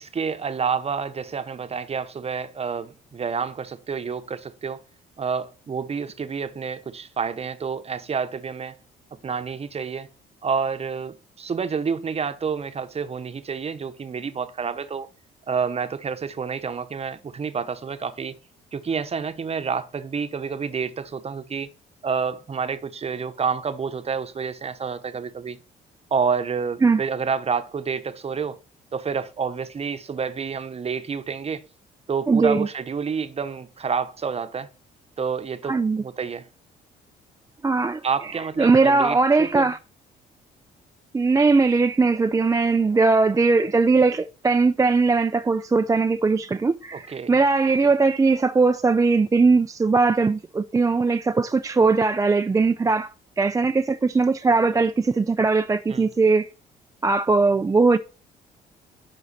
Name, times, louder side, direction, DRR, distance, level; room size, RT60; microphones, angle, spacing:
voice 1, 0.0-4.8 5.2-8.8 9.2-10.1 10.4-15.1 15.5-18.3 18.7-21.7 22.0-25.6 26.1-28.6 28.9-31.6 32.1-34.7 35.2-36.5 38.0-39.7 46.9-47.3 47.8-47.9 55.9-56.1, right 6 dB, 35° right, 0.9 m, -29 dB
voice 2, 32.3-32.7 35.7-36.0 37.6-38.0 38.6-39.8 41.1-53.1 53.4-56.5 57.0-58.0, right 4 dB, 20° right, 0.4 m, -20 dB
10.0 x 3.9 x 4.2 m
supercardioid pair, 70°, 18 cm